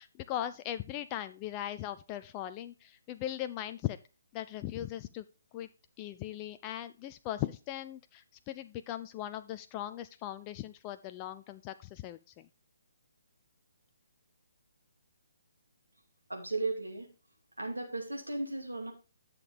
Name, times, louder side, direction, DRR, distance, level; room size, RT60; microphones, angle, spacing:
voice 1, 0.0-4.0 4.3-5.2 5.5-5.7 6.0-12.5, left 12 dB, 25° left, 11 dB, 0.4 m, -39 dB
voice 2, 16.3-17.1 17.6-18.9, right 2 dB, 80° right, 1 dB, 2.5 m, -35 dB
10.5 x 6.7 x 3.5 m, 0.32 s
figure-of-eight pair, 135°, 0 cm